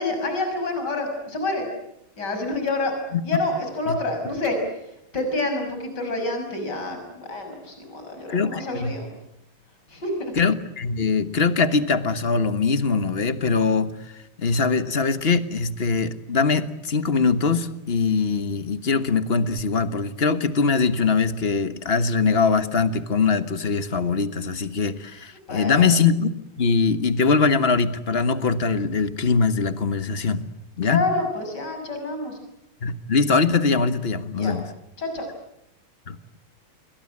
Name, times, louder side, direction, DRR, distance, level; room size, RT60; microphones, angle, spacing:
voice 1, 0.0-1.7 2.2-2.9 3.2-4.6 5.1-9.1 9.9-10.3 25.5-25.9 30.8-32.4 34.3-34.6 35.0-35.3, left 2 dB, 50° left, 5 dB, 6.7 m, -28 dB
voice 2, 8.3-8.9 10.4-13.9 14.4-30.5 30.8-31.1 32.8-34.7 36.1-36.2, left 4 dB, 30° left, 11 dB, 1.3 m, -22 dB
29.0 x 22.5 x 8.7 m, 0.81 s
omnidirectional pair, 2.4 m